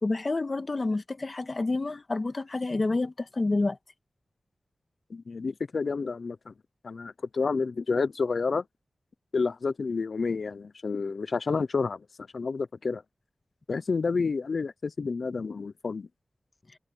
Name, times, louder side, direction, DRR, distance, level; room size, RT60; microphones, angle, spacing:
voice 1, 0.0-3.8, left 3 dB, 45° left, 2.0 m, -28 dB
voice 2, 5.1-6.5 6.8-8.6 9.3-12.0 12.3-13.0 13.7-16.1, left 4 dB, 70° left, 0.5 m, -29 dB
wide cardioid pair, 85°, 0 cm